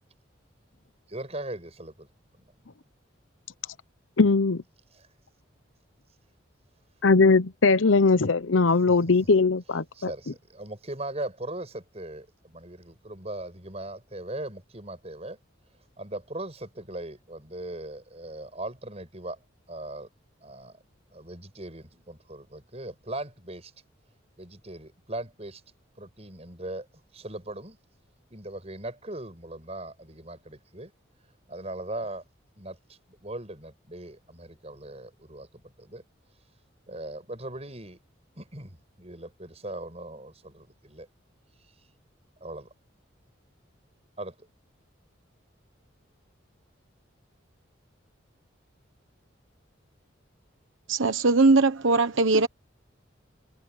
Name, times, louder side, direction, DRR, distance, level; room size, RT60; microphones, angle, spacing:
voice 1, 1.1-2.1 2.4-2.5 4.9-5.1 8.9-9.0 9.9-15.4 16.0-19.4 19.7-20.1 20.4-20.8 21.1-23.7 24.4-25.6 26.0-26.9 27.1-27.8 28.3-30.9 31.5-32.2 32.6-36.0 36.9-38.0 38.4-41.1 42.4-42.7 44.2-44.5, right 1 dB, 30° right, 7.5 m, -39 dB
voice 2, 4.2-4.6 7.0-10.1, left 4 dB, 80° left, 0.9 m, -20 dB
voice 3, 50.9-52.5, right 3 dB, 85° right, 1.1 m, -20 dB
head